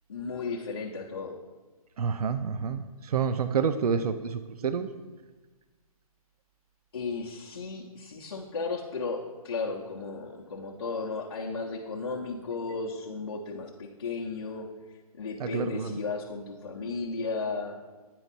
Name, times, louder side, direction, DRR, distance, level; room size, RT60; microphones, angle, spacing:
voice 1, 0.1-1.4 6.9-14.7 15.2-17.8, left 4 dB, 40° left, -4 dB, 0.6 m, -34 dB
voice 2, 2.0-4.9 15.4-15.9, right 6 dB, 80° right, 11 dB, 0.4 m, -28 dB
9.0 x 4.5 x 4.0 m, 1.3 s
hypercardioid pair, 180°, 19 cm